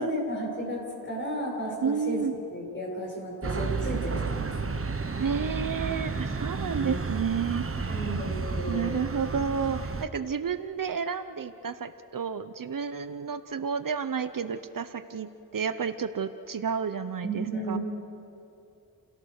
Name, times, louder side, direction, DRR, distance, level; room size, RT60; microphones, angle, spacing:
voice 1, 0.0-2.2 2.5-4.7 6.7-6.9 7.9-8.9 17.2-17.8, right 1 dB, 30° left, -2 dB, 7.4 m, -33 dB
voice 2, 1.8-2.3 5.2-8.0 8.7-17.8, right 6 dB, 60° right, 11 dB, 0.8 m, -31 dB
sound 1, 3.4-10.0, right 4 dB, 35° right, 1.2 m, -32 dB
30.0 x 17.0 x 6.6 m, 2.7 s
wide cardioid pair, 90°, 37 cm